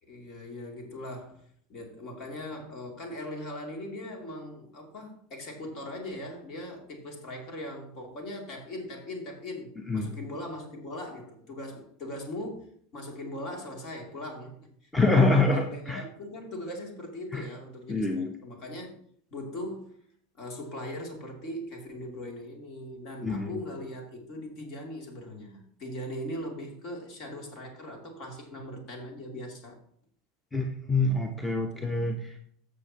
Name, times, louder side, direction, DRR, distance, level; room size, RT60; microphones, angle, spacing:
voice 1, 0.0-14.6 15.5-18.9 19.3-20.0 20.3-29.8 31.7-32.1, left 1 dB, 50° left, 1 dB, 2.9 m, -40 dB
voice 2, 14.9-16.0 17.3-17.4 17.9-18.3 23.2-23.5 30.5-32.5, left 2 dB, 10° left, 5 dB, 1.0 m, -25 dB
14.5 x 6.4 x 3.0 m, 0.63 s
hypercardioid pair, 85°, 0 cm